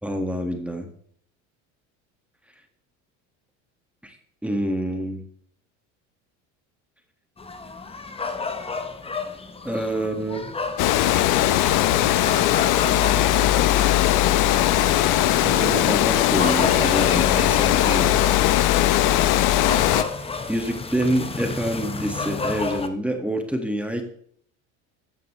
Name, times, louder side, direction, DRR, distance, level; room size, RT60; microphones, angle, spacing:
voice 1, 0.0-0.9 4.0-4.2 4.4-5.2 9.6-10.5 11.5-11.8 15.2-18.3 20.5-24.0, right 1 dB, 5° right, 4 dB, 1.8 m, -27 dB
sound 1, 7.4-22.9, left 4 dB, 15° left, 1.0 m, -32 dB
Water, 10.8-20.0, left 13 dB, 60° left, 0.9 m, -19 dB
13.5 x 9.0 x 3.2 m, 0.63 s
supercardioid pair, 100°, 35 cm